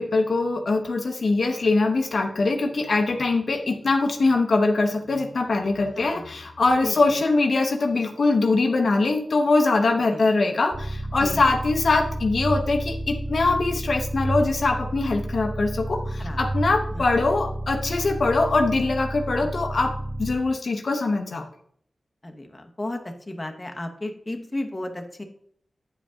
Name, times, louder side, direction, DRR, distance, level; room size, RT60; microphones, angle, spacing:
voice 1, 0.0-19.9 20.2-21.4, left 3 dB, 70° left, 3 dB, 1.0 m, -22 dB
voice 2, 6.0-6.4 6.8-7.2 10.1-10.3 11.2-11.6 16.2-16.4 16.9-17.2 19.4-19.5 22.2-25.2, left 1 dB, 25° left, 4 dB, 1.1 m, -34 dB
sound 1, 10.7-20.4, right 1 dB, 20° right, 1.4 m, -31 dB
8.8 x 5.0 x 3.7 m, 0.64 s
cardioid pair, 60°, 0 cm